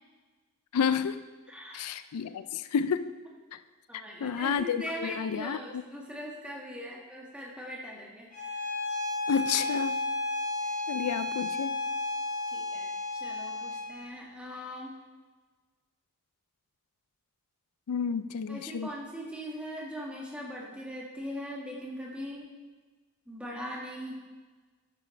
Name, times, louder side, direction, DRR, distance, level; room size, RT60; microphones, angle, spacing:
voice 1, 0.7-1.2 1.7-3.1 3.5-3.6 4.2-5.8 9.3-10.0 10.9-11.8 17.9-18.9, left 7 dB, 85° left, 13 dB, 0.4 m, -30 dB
voice 2, 1.5-1.9 3.9-8.6 10.6-10.7 12.5-14.9 18.5-22.5 23.3-24.2, equal, 5° right, -3 dB, 1.7 m, -40 dB
Bowed string instrument, 8.3-13.9, left 2 dB, 40° left, 2.2 m, -32 dB
12.0 x 9.1 x 3.3 m, 1.4 s
head